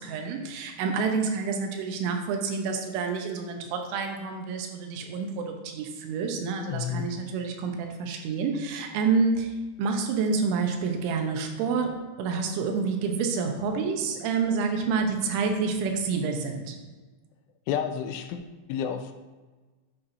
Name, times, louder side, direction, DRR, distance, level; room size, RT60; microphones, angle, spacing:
voice 1, 0.0-16.8, right 5 dB, 80° right, 3 dB, 3.3 m, -28 dB
voice 2, 6.7-7.1 17.7-18.4 18.7-19.1, left 8 dB, 90° left, 6 dB, 3.1 m, -30 dB
9.6 x 8.5 x 2.7 m, 1.3 s
omnidirectional pair, 5.5 m